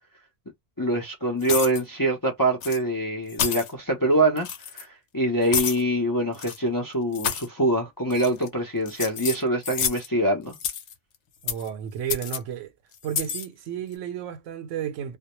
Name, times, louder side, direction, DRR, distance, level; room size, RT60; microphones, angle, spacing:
voice 1, 0.8-4.5 4.7-10.6, right 1 dB, 30° left, 0.4 m, -24 dB
sound 1, 1.4-1.8 2.6-2.8 3.3-3.7 4.4-4.8 5.5-5.8 6.3-6.6 7.1-7.5 8.1-8.5 8.9-10.1 10.5-10.9 11.5-11.7 12.1-12.4 13.0-13.5, left 7 dB, 70° left, 0.8 m, -29 dB
voice 2, 11.4-12.7 13.0-15.2, right 9 dB, 80° right, 0.9 m, -32 dB
2.2 x 2.1 x 2.9 m
omnidirectional pair, 1.3 m